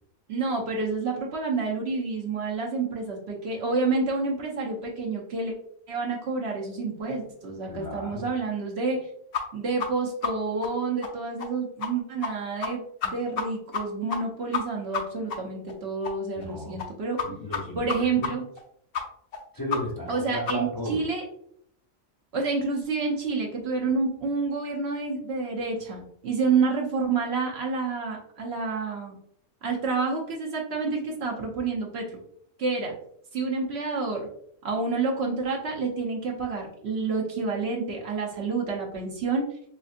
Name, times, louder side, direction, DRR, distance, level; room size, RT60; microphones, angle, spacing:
voice 1, 0.3-5.5 5.9-9.1 9.5-17.2 17.8-18.5 20.1-21.2 22.3-29.2 29.6-32.1 32.6-32.9 33.3-34.3 34.6-39.5, right 4 dB, 60° right, -1 dB, 0.9 m, -29 dB
voice 2, 7.7-8.3 16.4-16.8 17.2-18.3 19.5-21.1, equal, 25° left, -4 dB, 0.5 m, -34 dB
sound 1, 9.3-9.4 9.8-9.9 10.2-10.3 10.6-10.7 11.0-11.1 11.4-11.5 11.8-11.9 12.2-12.3 12.6-12.7 13.0-13.5 13.7-13.8 14.1-14.2 14.5-14.6 14.9-15.0 15.3-15.4 15.7-15.8 16.0-16.1 16.4-16.5 16.8-16.9 17.2-17.3 17.5-17.6 17.9-18.0 18.2-18.3 18.6-18.7 18.9-19.0 19.3-19.4 19.7-19.8 20.1-20.2 20.5-20.6 20.9-21.0, left 6 dB, 60° left, 0.7 m, -29 dB
4.2 x 2.7 x 2.4 m, 0.69 s
omnidirectional pair, 1.4 m